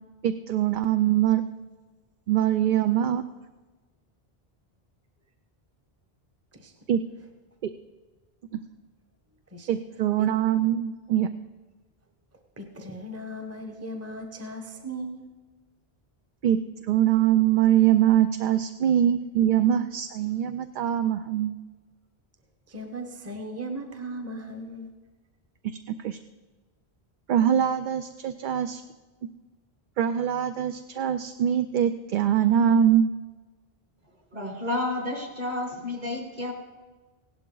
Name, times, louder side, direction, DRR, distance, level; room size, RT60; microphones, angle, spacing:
voice 1, 0.2-1.4 2.3-3.2 6.9-7.0 7.6-7.7 9.7-11.3 16.4-21.6 25.6-26.2 27.3-28.8 30.0-33.1, right 10 dB, 60° right, 10 dB, 0.6 m, -23 dB
voice 2, 12.6-15.3 22.7-24.9, right 1 dB, 15° right, 4 dB, 1.0 m, -37 dB
voice 3, 34.3-36.5, left 2 dB, 45° right, 1 dB, 2.4 m, -30 dB
16.5 x 11.5 x 3.9 m, 1.3 s
omnidirectional pair, 1.0 m